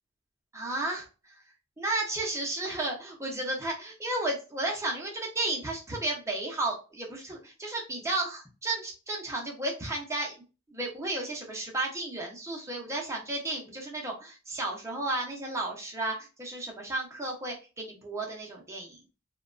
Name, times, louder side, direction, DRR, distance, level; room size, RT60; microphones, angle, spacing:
voice 1, 0.5-1.1 1.8-10.4 10.7-19.0, right 2 dB, 15° right, -1 dB, 0.7 m, -33 dB
2.8 x 2.2 x 2.4 m, 0.33 s
head